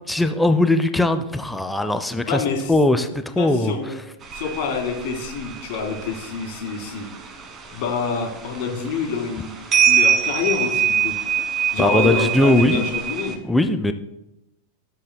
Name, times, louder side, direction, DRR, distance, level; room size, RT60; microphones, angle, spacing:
voice 1, 0.1-2.4 2.7-3.7 11.8-12.8 13.4-13.9, left 1 dB, 5° left, 9 dB, 0.5 m, -19 dB
voice 2, 2.3-2.8 3.4-4.0 4.3-7.1 7.7-9.5 9.8-11.2 11.7-13.4, left 5 dB, 50° left, 1 dB, 2.0 m, -26 dB
sound 1, 4.2-13.4, right 8 dB, 25° right, 1.2 m, -24 dB
14.0 x 7.7 x 2.2 m, 0.88 s
figure-of-eight pair, 90°, 0 cm